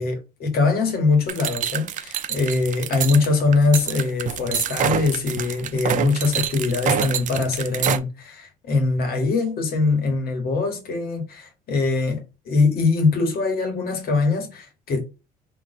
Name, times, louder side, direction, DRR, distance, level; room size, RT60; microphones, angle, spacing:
voice 1, 0.0-15.0, left 3 dB, 65° left, 1.7 m, -22 dB
sound 1, 1.3-8.0, right 9 dB, 50° right, 0.5 m, -26 dB
4.3 x 3.0 x 3.8 m
cardioid pair, 110°, 17 cm